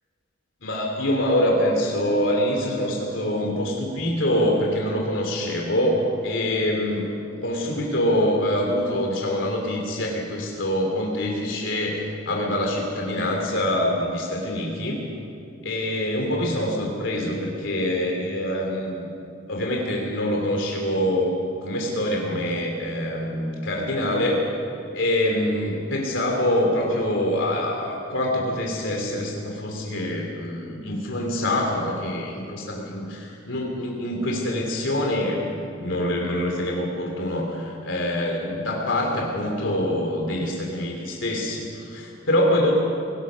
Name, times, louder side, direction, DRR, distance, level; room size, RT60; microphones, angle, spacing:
voice 1, 0.6-7.1 7.4-15.0 15.6-19.1 19.5-24.4 24.9-42.7, left 1 dB, 90° left, 0 dB, 3.2 m, -25 dB
25.0 x 18.0 x 6.3 m, 2.6 s
head